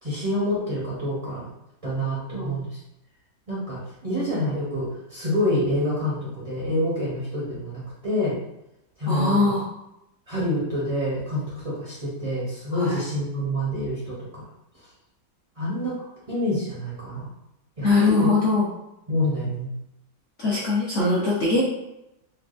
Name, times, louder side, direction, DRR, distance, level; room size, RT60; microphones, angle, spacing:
voice 1, 0.0-1.5 1.8-2.8 3.5-8.4 9.0-9.5 10.3-14.4 15.6-16.0 16.3-17.3 17.8-18.3 19.1-19.7, left 1 dB, 35° right, -8 dB, 0.5 m, -27 dB
voice 2, 9.1-9.6 12.7-13.0 17.8-18.7 20.4-21.6, left 3 dB, 65° left, -6 dB, 0.7 m, -21 dB
4.6 x 2.2 x 2.5 m, 0.87 s
omnidirectional pair, 2.0 m